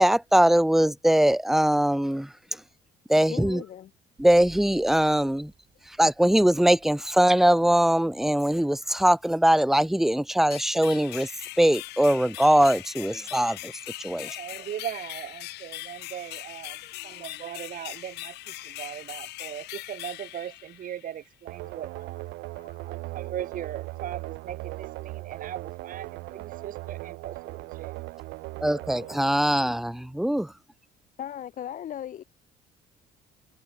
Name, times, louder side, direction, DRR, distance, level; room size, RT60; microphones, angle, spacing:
voice 1, 0.0-2.6 3.1-3.6 4.2-5.5 5.9-11.3 11.6-13.7 14.0-14.4 28.6-30.5, right 1 dB, ahead, 0.7 m, -22 dB
voice 2, 3.3-3.9 14.1-14.2 16.8-17.3 21.6-21.7 22.5-22.9 29.0-29.4 31.2-32.2, left 10 dB, 50° left, 1.3 m, -39 dB
sound 1, 4.2-9.7, right 6 dB, 40° right, 6.5 m, -55 dB
sound 2, 10.5-21.2, left 18 dB, 80° left, 0.8 m, -40 dB
voice 3, 14.4-22.2 22.9-28.0, right 10 dB, 55° right, 1.8 m, -39 dB
sound 3, 21.5-30.2, right 21 dB, 85° right, 0.6 m, -39 dB
cardioid pair, 110°, 17 cm